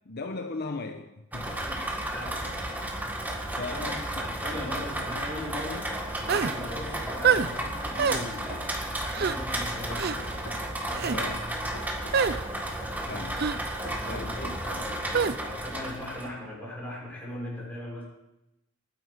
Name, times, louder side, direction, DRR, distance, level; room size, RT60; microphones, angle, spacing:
voice 1, 0.0-1.7 3.6-4.0 11.1-11.4 13.0-13.4 14.1-14.6, left 3 dB, 55° left, 5 dB, 0.9 m, -37 dB
Rain, 1.3-16.3, right 1 dB, 10° right, 1.7 m, -33 dB
voice 2, 1.4-2.9 3.5-10.4 10.9-11.3 12.6-13.2 13.8-18.0, left 1 dB, 10° left, -4 dB, 5.8 m, -39 dB
sound 1, 6.3-6.6 7.2-7.5 8.0-8.2 9.1-9.4 9.9-10.2 10.9-11.2 12.1-12.4 13.4-13.6 15.1-15.4, right 6 dB, 50° right, 0.5 m, -25 dB
sound 2, 6.9-7.1 8.2-8.7 9.9-10.6 11.7-12.5 13.8-14.3 15.2-15.4, left 1 dB, 80° left, 3.5 m, -43 dB
20.0 x 9.9 x 5.1 m, 0.90 s
head